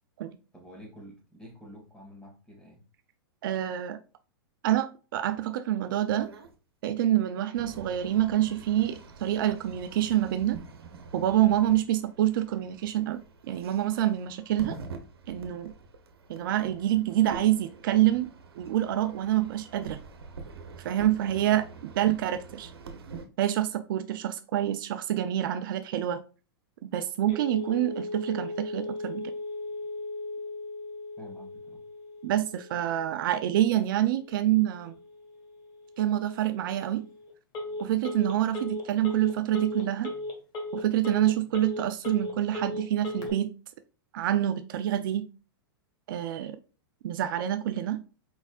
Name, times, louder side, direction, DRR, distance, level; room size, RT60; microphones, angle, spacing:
voice 1, 0.5-2.8 21.6-21.7 31.2-31.8, equal, 5° left, 1.9 m, -49 dB
voice 2, 3.4-4.0 4.6-4.9 5.1-6.3 6.8-10.6 11.1-14.8 15.3-15.7 16.3-18.3 18.6-20.0 20.8-22.7 23.4-26.2 26.8-29.3 32.2-34.9 36.0-37.1 37.8-40.1 40.7-43.5 44.1-45.3 46.1-46.6 47.0-48.0, right 12 dB, 60° right, 0.5 m, -27 dB
sound 1, 6.2-6.5 7.6-23.3, right 4 dB, 80° right, 0.9 m, -46 dB
Telephone, 27.3-43.3, left 2 dB, 35° left, 1.5 m, -38 dB
4.7 x 4.1 x 2.4 m
hypercardioid pair, 115°, 13 cm